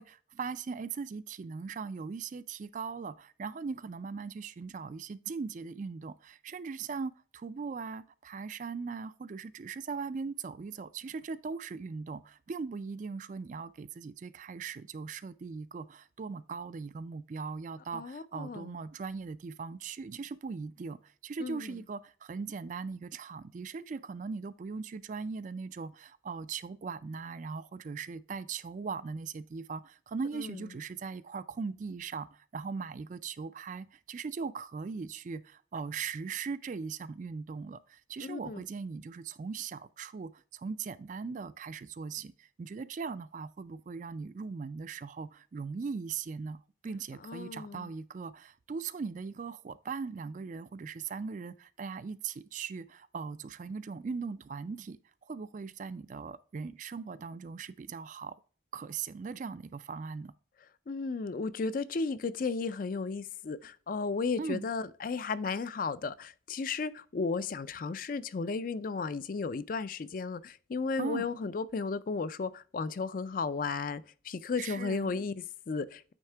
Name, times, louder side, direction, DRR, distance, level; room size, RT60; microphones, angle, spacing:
voice 1, 0.0-55.0 55.3-58.3 58.7-60.3 64.4-64.7 71.0-71.3 74.6-75.1, right 5 dB, 40° right, 0.3 m, -39 dB
voice 2, 17.9-18.8 21.4-21.8 30.3-30.6 38.2-38.6 47.2-47.9 60.9-76.1, left 4 dB, 45° left, 0.4 m, -34 dB
8.9 x 3.6 x 3.3 m
head